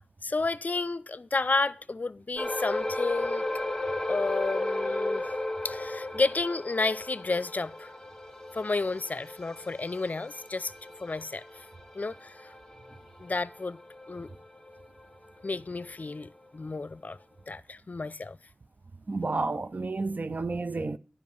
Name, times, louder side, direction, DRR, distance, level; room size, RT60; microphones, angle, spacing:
voice 1, 0.2-3.4 4.1-5.2 5.6-7.9 8.5-10.7 11.0-11.4 11.9-12.5 13.2-13.8 14.1-14.3 15.4-17.2 17.5-18.4, left 3 dB, 60° left, 0.5 m, -31 dB
sound 1, 2.4-15.1 15.4-15.6 16.1-16.2, left 2 dB, 10° left, 1.5 m, -35 dB
voice 2, 19.1-21.0, right 3 dB, 60° right, 0.5 m, -31 dB
11.0 x 5.4 x 7.1 m
wide cardioid pair, 45°, 3 cm